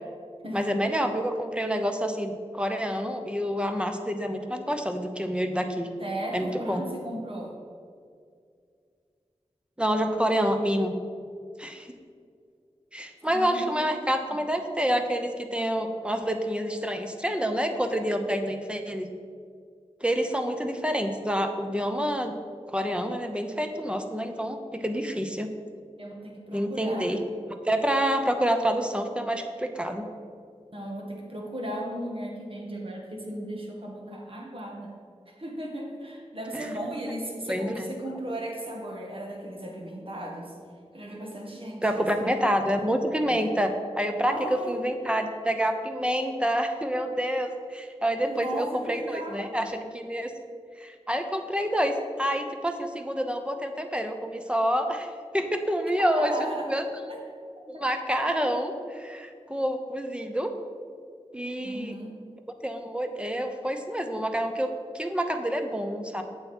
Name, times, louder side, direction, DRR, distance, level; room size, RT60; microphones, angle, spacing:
voice 1, 0.5-5.9 6.3-6.8 9.8-10.9 11.6-11.9 12.9-19.1 20.0-22.3 22.7-25.5 26.5-27.2 27.6-30.0 36.5-36.7 37.5-37.9 41.8-44.4 44.7-50.3 50.8-56.8 57.7-60.5 61.3-61.9 62.6-66.2, equal, 10° right, 5 dB, 0.9 m, -28 dB
voice 2, 6.0-7.5 13.3-14.4 26.0-27.1 30.7-34.9 35.3-40.6 40.9-42.4 42.7-42.9 43.2-43.4 44.3-44.8 48.2-49.5 56.1-56.7 57.1-57.2 57.7-57.8 61.6-62.1, right 1 dB, 50° right, -1 dB, 1.9 m, -36 dB
8.6 x 7.3 x 4.4 m, 2.2 s
wide cardioid pair, 55°, 12 cm